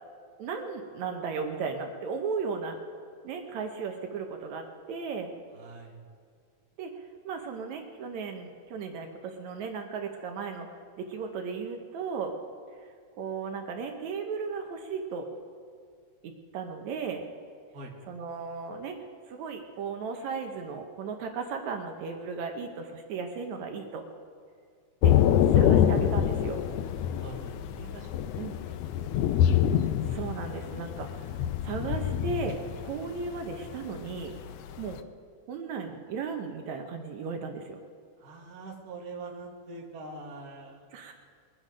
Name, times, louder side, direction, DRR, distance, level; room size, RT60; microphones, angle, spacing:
voice 1, 0.4-2.8 3.2-5.3 6.8-12.3 12.8-15.3 16.2-17.2 18.1-19.0 19.3-24.0 25.0-25.1 25.5-26.6 28.4-28.6 30.0-31.3 31.6-32.6 32.8-34.3 34.8-35.0 35.5-37.8 40.9-41.1, right 5 dB, 75° right, 4 dB, 2.2 m, -36 dB
voice 2, 5.5-6.0 17.7-17.9 27.2-28.8 38.2-40.9, right 3 dB, 40° right, 0 dB, 1.8 m, -44 dB
Thunder / Rain, 25.0-35.0, left 10 dB, 75° left, 1.5 m, -26 dB
21.5 x 9.7 x 5.1 m, 2.1 s
omnidirectional pair, 3.4 m